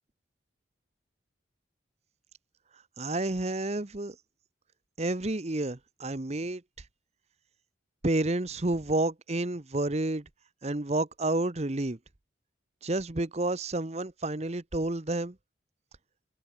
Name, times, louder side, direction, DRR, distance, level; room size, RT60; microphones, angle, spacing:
voice 1, 3.0-4.1 5.0-6.6 8.0-10.2 10.6-12.0 12.8-15.3, right 2 dB, 35° right, 1.0 m, -30 dB
head